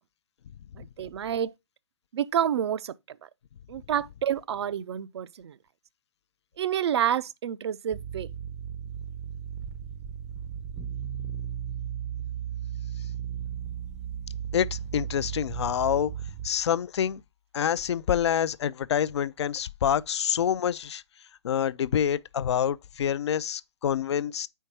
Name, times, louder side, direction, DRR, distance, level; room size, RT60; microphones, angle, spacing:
voice 1, 0.8-1.5 2.1-3.3 3.7-5.6 6.6-8.3, right 9 dB, 65° right, 0.4 m, -29 dB
sound 1, 7.9-16.5, right 9 dB, 15° right, 0.5 m, -35 dB
voice 2, 14.5-16.1 16.4-17.2 17.5-21.0 21.4-24.5, left 9 dB, 70° left, 0.4 m, -27 dB
4.6 x 4.4 x 5.8 m
hypercardioid pair, 130°, 15 cm